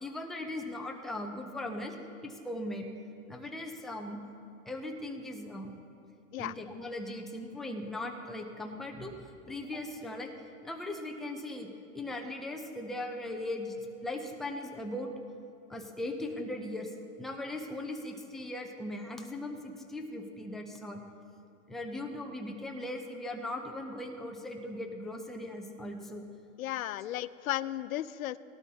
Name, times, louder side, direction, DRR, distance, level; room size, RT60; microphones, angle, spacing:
voice 1, 0.0-2.0 2.2-2.9 3.3-4.2 4.7-5.7 6.4-10.3 10.6-11.7 11.9-13.8 14.0-15.1 15.7-16.9 17.2-21.0 21.7-26.2, left 1 dB, ahead, 1 dB, 0.4 m, -39 dB
voice 2, 26.6-28.4, left 14 dB, 80° left, 16 dB, 0.6 m, -34 dB
18.5 x 12.5 x 2.8 m, 2.7 s
hypercardioid pair, 135°, 41 cm